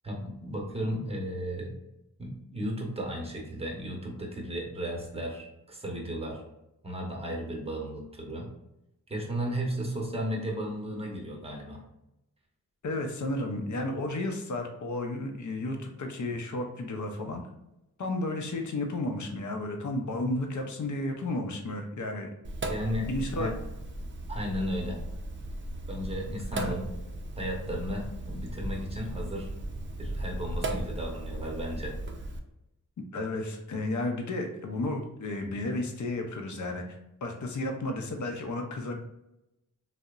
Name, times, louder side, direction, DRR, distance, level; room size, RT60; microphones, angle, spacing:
voice 1, 0.0-1.7 2.2-6.4 6.8-8.5 9.1-11.8 22.7-23.1 23.4-23.5 24.3-25.0 25.9-26.9 27.4-29.5 30.0-31.9, equal, 15° right, -1 dB, 0.8 m, -34 dB
voice 2, 12.8-17.4 18.0-22.3 22.9-23.5 26.5-26.7 33.1-38.9, left 2 dB, 55° left, 4 dB, 0.5 m, -33 dB
Sink (filling or washing), 22.4-32.4, right 1 dB, 35° right, 0.4 m, -36 dB
2.7 x 2.0 x 2.3 m, 0.88 s
cardioid pair, 45°, 35 cm